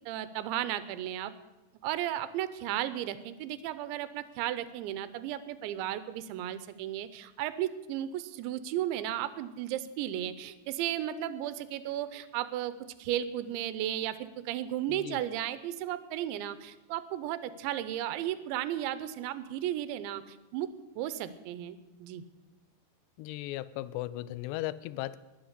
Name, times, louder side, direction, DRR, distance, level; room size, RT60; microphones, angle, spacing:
voice 1, 0.0-1.3 1.8-12.7 13.0-20.7 21.0-22.2, right 12 dB, 85° right, 14 dB, 3.1 m, -34 dB
voice 2, 14.9-15.2 23.2-25.2, left 16 dB, 80° left, 17 dB, 2.7 m, -37 dB
21.0 x 8.5 x 8.1 m, 1.1 s
omnidirectional pair, 5.1 m